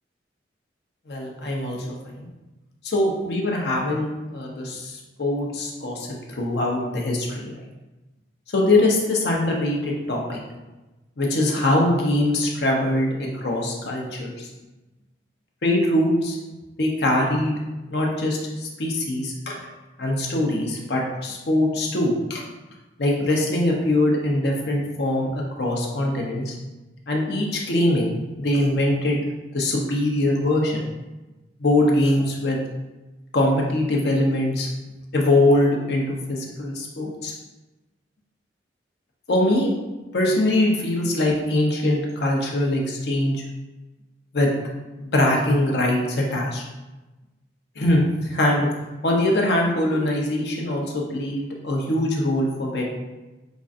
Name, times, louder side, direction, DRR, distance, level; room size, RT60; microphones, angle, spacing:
voice 1, 1.1-2.1 2.8-6.1 6.3-7.5 8.5-10.4 11.2-14.5 15.6-16.4 16.8-17.6 17.9-19.6 20.0-22.4 23.0-26.5 27.1-29.2 29.5-30.8 31.6-32.6 33.3-34.7 35.1-37.3 39.3-39.7 40.1-43.4 44.3-44.5 45.0-46.6 47.8-48.7 49.0-52.9, left 1 dB, 65° left, -1 dB, 0.6 m, -22 dB
5.1 x 2.5 x 2.5 m, 1.1 s
head